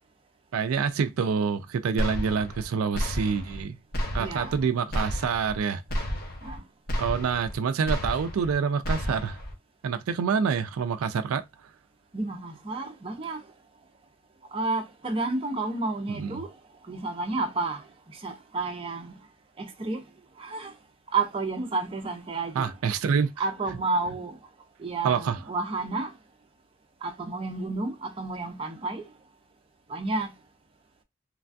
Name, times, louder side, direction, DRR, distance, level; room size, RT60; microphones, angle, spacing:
voice 1, 0.5-3.8 4.1-5.8 7.0-9.4 9.8-11.4 16.1-16.4 22.6-23.3 25.0-25.4, right 6 dB, 80° right, 0.4 m, -27 dB
sound 1, 2.0-2.7 2.9-3.6 3.9-4.6 4.9-5.6 5.9-6.6 6.9-7.6 7.9-8.6 8.8-9.5, equal, 45° left, 0.8 m, -31 dB
voice 2, 4.2-4.5 6.4-6.6 12.1-13.4 14.5-16.5 16.9-17.8 18.2-19.1 19.6-20.0 20.4-20.7 21.1-22.7 23.4-24.3 24.8-26.1 27.0-29.1 29.9-30.3, right 3 dB, 25° right, 0.5 m, -30 dB
3.2 x 2.2 x 2.5 m
head